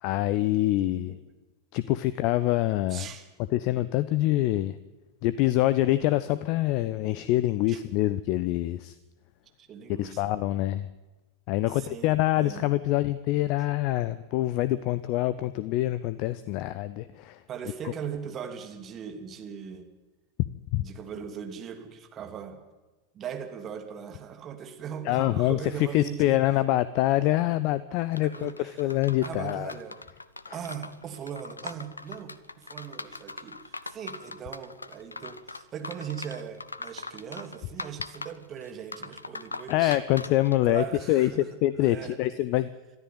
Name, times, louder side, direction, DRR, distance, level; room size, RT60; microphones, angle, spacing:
voice 1, 0.0-1.1 1.7-3.1 3.5-4.8 5.2-9.0 10.0-10.9 11.5-17.4 20.7-20.8 25.0-29.7 30.5-30.6 39.7-42.7, left 15 dB, 45° left, 16 dB, 0.7 m, -25 dB
voice 2, 0.8-1.2 2.9-3.3 7.7-7.8 9.6-10.3 11.7-12.7 17.5-19.9 20.8-22.6 23.1-26.4 28.2-28.9 29.2-30.0 30.5-40.0 40.7-41.5 41.8-42.2, right 8 dB, 30° right, 5 dB, 2.7 m, -39 dB
sound 1, 28.1-41.0, left 3 dB, 80° left, 0.8 m, -41 dB
22.0 x 13.5 x 9.4 m, 1.2 s
figure-of-eight pair, 90°, 0 cm